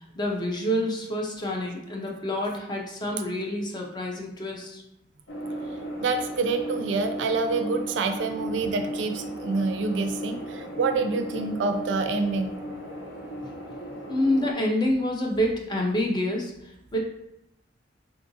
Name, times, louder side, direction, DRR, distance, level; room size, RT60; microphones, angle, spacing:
voice 1, 0.2-4.8 14.1-16.5 16.9-17.0, left 1 dB, 25° left, 0 dB, 0.4 m, -27 dB
sound 1, 5.3-14.5, right 1 dB, 80° left, 0.5 m, -36 dB
voice 2, 6.0-12.5, right 4 dB, 75° right, 7 dB, 0.3 m, -27 dB
3.7 x 2.4 x 2.6 m, 0.83 s
head